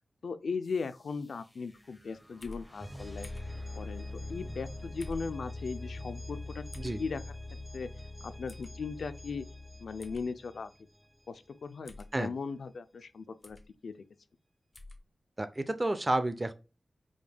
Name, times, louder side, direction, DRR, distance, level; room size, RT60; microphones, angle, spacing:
voice 1, 0.2-3.3 3.8-7.2 7.7-7.9 8.2-9.5 9.8-10.7 11.3-13.6 13.8-13.9, left 4 dB, 80° left, 0.4 m, -38 dB
sound 1, 0.6-11.5, left 2 dB, ahead, 0.9 m, -44 dB
sound 2, 2.4-2.6 3.2-3.5 5.0-5.3 6.7-7.0 8.5-8.7 10.0-10.2 11.8-12.1 13.4-13.7 14.7-15.0, left 2 dB, 35° left, 0.6 m, -46 dB
voice 2, 15.4-16.5, right 2 dB, 30° right, 0.5 m, -30 dB
4.9 x 3.4 x 2.2 m
cardioid pair, 65°, 0 cm